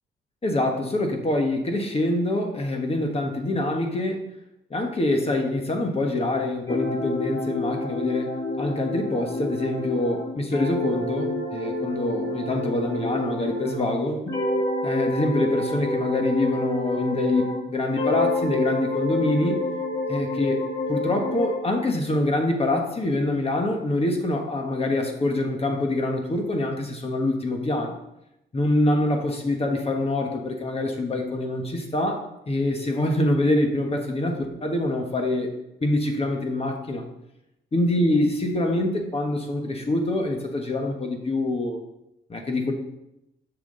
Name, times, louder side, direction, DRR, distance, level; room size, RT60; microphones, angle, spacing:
voice 1, 0.4-4.2 4.7-14.3 14.8-19.6 20.1-20.6 20.9-27.9 28.5-35.5 35.8-37.1 37.7-41.8 42.3-42.7, left 1 dB, 30° left, 3 dB, 1.4 m, -25 dB
sound 1, 6.7-13.9 14.3-17.6 17.9-21.6, left 2 dB, 70° left, 3.8 m, -28 dB
10.0 x 6.0 x 3.9 m, 0.86 s
cardioid pair, 90°, 20 cm